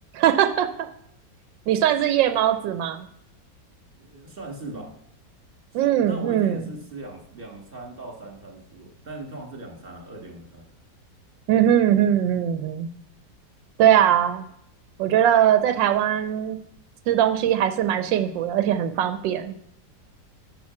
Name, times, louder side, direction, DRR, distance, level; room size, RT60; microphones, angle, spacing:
voice 1, 0.1-0.7 1.7-3.1 5.7-6.6 11.5-12.9 13.8-14.4 15.0-16.6 17.1-19.5, right 10 dB, 85° right, 9 dB, 1.3 m, -20 dB
voice 2, 3.9-4.9 5.9-10.6, right 2 dB, 30° right, 0 dB, 2.2 m, -39 dB
8.6 x 6.0 x 5.9 m, 0.76 s
omnidirectional pair, 2.0 m